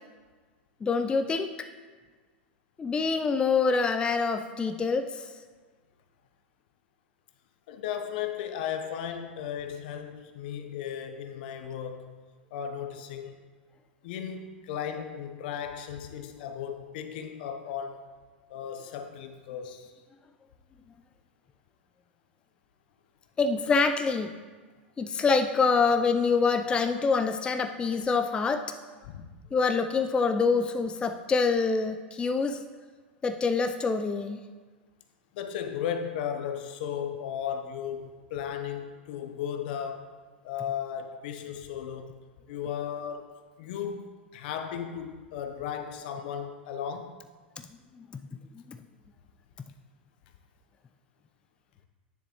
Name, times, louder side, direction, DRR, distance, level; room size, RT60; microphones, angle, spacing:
voice 1, 0.8-1.7 2.8-5.3 23.4-24.3 25.0-28.7 29.5-32.6 33.2-34.4, left 4 dB, 15° left, 8 dB, 0.4 m, -26 dB
voice 2, 7.7-12.1 12.5-13.4 14.0-18.0 18.5-19.9 29.1-29.3 35.3-40.1 40.4-42.2 42.5-44.0 44.3-47.1, left 8 dB, 60° left, 7 dB, 0.8 m, -35 dB
9.7 x 6.9 x 3.0 m, 1.4 s
hypercardioid pair, 95°, 6 cm